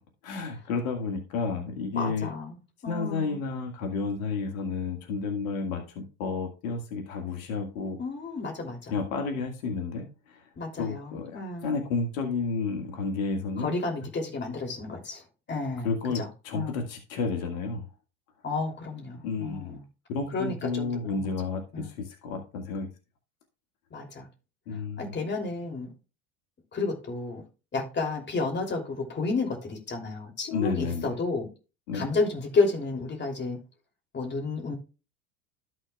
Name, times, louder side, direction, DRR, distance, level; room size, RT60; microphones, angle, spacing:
voice 1, 0.2-2.3 2.9-8.0 8.9-10.4 10.8-13.8 15.8-17.8 19.2-19.8 20.1-22.9 24.7-25.1 30.5-31.2 31.9-32.1, left 4 dB, 75° left, 1.9 m, -31 dB
voice 2, 1.9-2.6 2.8-3.4 8.0-9.0 10.6-11.8 13.6-15.2 15.5-15.9 16.1-16.3 16.5-16.8 18.4-19.8 20.3-21.2 21.7-21.9 23.9-24.3 25.0-25.9 26.7-27.4 27.7-31.5 31.9-33.6 34.1-34.7, left 3 dB, 25° left, 3.0 m, -31 dB
13.5 x 6.2 x 2.3 m
hypercardioid pair, 95°, 42 cm